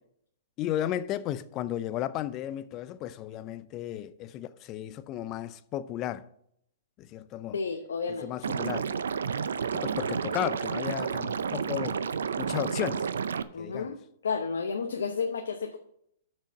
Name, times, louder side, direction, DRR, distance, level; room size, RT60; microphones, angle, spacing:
voice 1, 0.6-6.3 7.0-7.6 8.2-8.9 9.6-12.0 12.4-13.1 13.6-13.9, left 12 dB, 35° left, 0.5 m, -34 dB
voice 2, 7.5-8.3 13.5-14.0 14.2-15.8, left 5 dB, 80° left, 0.8 m, -31 dB
Liquid, 8.4-13.4, right 6 dB, 80° right, 0.5 m, -31 dB
6.4 x 6.3 x 7.4 m
hypercardioid pair, 120°, 0 cm